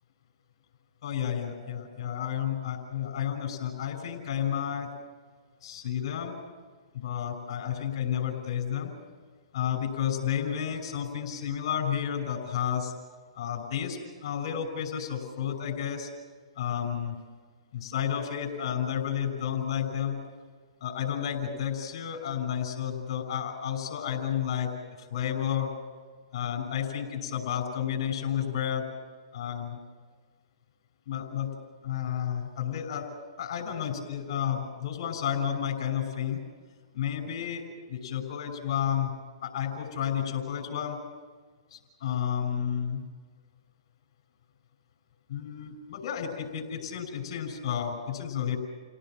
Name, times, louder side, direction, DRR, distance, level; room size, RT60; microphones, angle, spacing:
voice 1, 1.0-4.9 5.6-6.3 6.9-8.9 9.5-12.9 13.3-16.1 16.6-17.2 17.7-20.2 20.8-24.7 25.0-25.7 26.3-28.9 29.3-29.8 31.1-31.5 31.8-33.1 33.4-36.4 36.9-39.1 39.4-41.0 41.7-43.0 45.3-48.6, left 9 dB, 55° left, 4 dB, 6.1 m, -31 dB
29.5 x 18.0 x 7.6 m, 1.5 s
hypercardioid pair, 140°, 3 cm